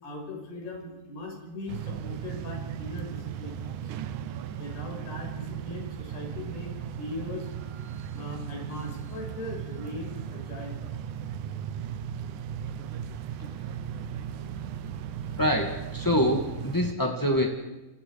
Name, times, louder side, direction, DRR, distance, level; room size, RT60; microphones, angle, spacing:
voice 1, 0.0-4.0 4.6-7.5 8.1-10.8 15.3-15.4, left 1 dB, 75° left, 1 dB, 7.6 m, -39 dB
sound 1, 1.7-16.9, right 9 dB, 75° right, 1.9 m, -37 dB
voice 2, 15.4-17.5, equal, 15° left, 1 dB, 0.7 m, -25 dB
27.5 x 27.5 x 4.9 m, 1.1 s
omnidirectional pair, 4.7 m